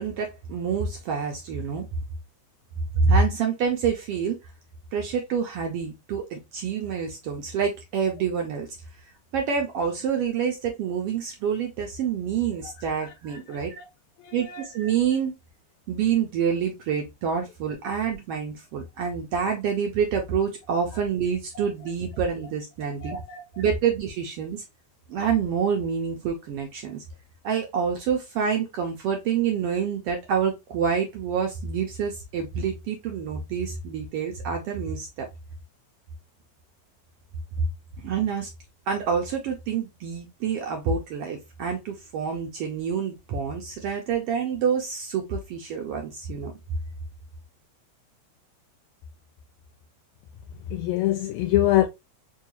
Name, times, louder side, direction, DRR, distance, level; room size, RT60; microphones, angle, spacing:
voice 1, 0.0-1.8 3.0-4.4 4.9-8.7 9.3-13.8 14.3-15.3 15.9-23.2 23.6-24.6 25.1-27.0 27.4-35.3 38.0-38.5 38.9-46.5, right 6 dB, 75° right, 1.4 m, -27 dB
voice 2, 13.5-13.9 14.2-14.7 21.6-21.7 23.0-23.4 50.7-51.9, left 13 dB, 80° left, 1.8 m, -25 dB
4.6 x 2.3 x 2.9 m
omnidirectional pair, 3.3 m